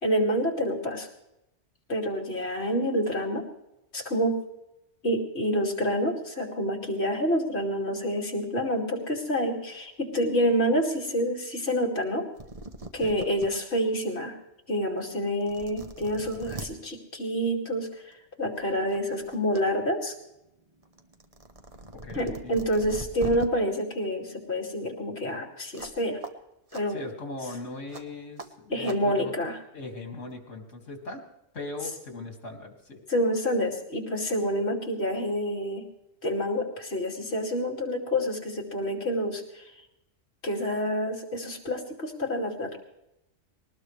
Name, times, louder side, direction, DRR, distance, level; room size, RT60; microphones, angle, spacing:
voice 1, 0.0-1.1 1.9-3.4 3.9-4.4 5.0-12.3 12.9-14.3 14.7-20.1 22.1-26.2 26.7-27.0 28.7-29.6 33.1-35.8 36.2-39.6 40.4-42.8, equal, 60° left, 1 dB, 2.9 m, -28 dB
sound 1, 12.1-12.2 12.4-13.5 14.0-14.1 15.0-15.1 15.4-16.7 18.0-18.2 18.6-19.6 20.0-23.5 25.7-26.0 26.2-26.3 26.7-26.8 27.9-28.0 28.4-28.5 28.8-29.0, right 2 dB, 30° right, 1.1 m, -41 dB
voice 2, 21.9-22.6 26.9-29.3 29.7-31.2 31.5-33.0, left 2 dB, 75° left, 3 dB, 2.8 m, -39 dB
21.0 x 19.0 x 3.3 m, 0.85 s
omnidirectional pair, 1.3 m